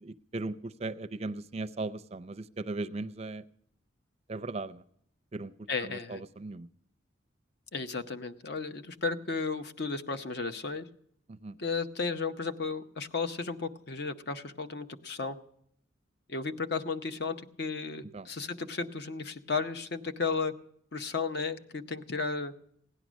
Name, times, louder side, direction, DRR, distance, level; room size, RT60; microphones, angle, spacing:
voice 1, 0.0-3.4 4.3-4.8 5.3-5.5 6.1-6.7 11.3-11.5 18.1-18.3, right 2 dB, 35° right, 10 dB, 0.5 m, -37 dB
voice 2, 5.7-6.2 7.7-10.9 11.6-15.4 16.3-20.5 20.9-22.5, left 4 dB, 55° left, 8 dB, 0.8 m, -34 dB
16.5 x 10.5 x 6.2 m, 0.70 s
head